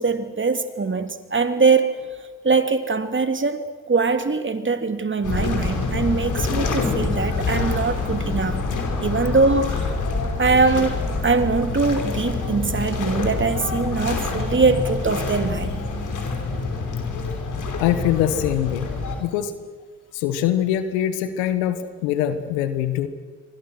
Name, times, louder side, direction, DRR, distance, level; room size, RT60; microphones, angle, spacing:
voice 1, 0.0-1.9 2.4-8.6 9.0-9.9 10.4-15.7, right 4 dB, 35° right, 8 dB, 2.9 m, -22 dB
sound 1, 5.2-19.2, left 3 dB, 60° left, 5.4 m, -26 dB
voice 2, 17.8-18.9 19.2-19.5 20.1-23.1, left 11 dB, 85° left, 11 dB, 1.6 m, -23 dB
28.0 x 24.5 x 6.3 m, 1.4 s
hypercardioid pair, 40°, 33 cm